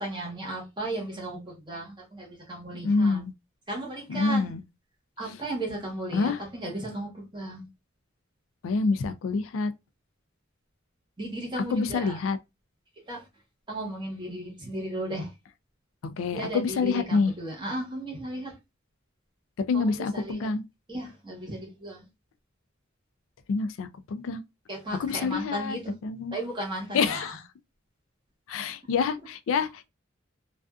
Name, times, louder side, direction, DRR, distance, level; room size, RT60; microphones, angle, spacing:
voice 1, 0.0-3.2 3.7-4.5 5.2-7.7 11.2-12.2 13.1-13.2 13.7-15.3 16.3-18.5 19.7-20.5 20.9-22.1 24.7-26.0 26.3-27.3, right 1 dB, 25° right, 1.0 m, -35 dB
voice 2, 2.7-3.3 4.1-4.6 5.2-5.3 6.1-6.4 8.6-9.7 11.7-12.4 16.2-17.3 19.6-20.6 23.5-24.4 25.0-25.8 26.0-26.4 26.9-27.4 28.5-29.9, left 4 dB, 75° left, 0.3 m, -27 dB
2.4 x 2.4 x 2.3 m
head